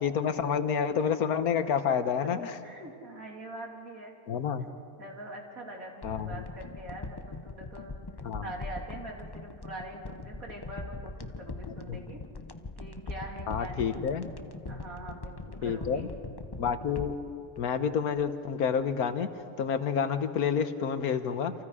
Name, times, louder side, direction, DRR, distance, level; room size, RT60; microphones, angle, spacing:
voice 1, 0.0-2.6 4.3-4.7 6.0-6.3 8.2-8.4 13.5-14.3 15.6-16.1 16.6-17.2 17.6-19.3 19.6-21.5, left 7 dB, 80° left, 10 dB, 1.5 m, -29 dB
voice 2, 1.7-2.1 2.6-4.1 5.0-8.0 8.4-12.2 12.8-14.1 14.7-16.1, right 1 dB, 70° right, -1 dB, 3.5 m, -43 dB
sound 1, 6.0-18.5 18.8-18.9, left 3 dB, 25° left, 0.5 m, -41 dB
28.5 x 27.0 x 4.9 m, 2.6 s
omnidirectional pair, 1.5 m